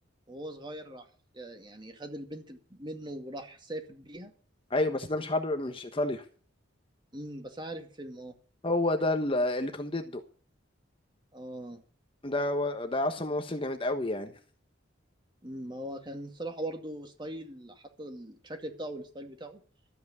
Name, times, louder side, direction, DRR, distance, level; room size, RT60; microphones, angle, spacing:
voice 1, 0.3-1.1 1.3-4.3 7.1-8.3 11.3-11.8 15.4-19.6, right 1 dB, 25° right, 2.2 m, -40 dB
voice 2, 4.7-6.2 8.6-10.2 12.2-14.3, left 2 dB, 30° left, 1.2 m, -29 dB
13.5 x 8.2 x 8.0 m
head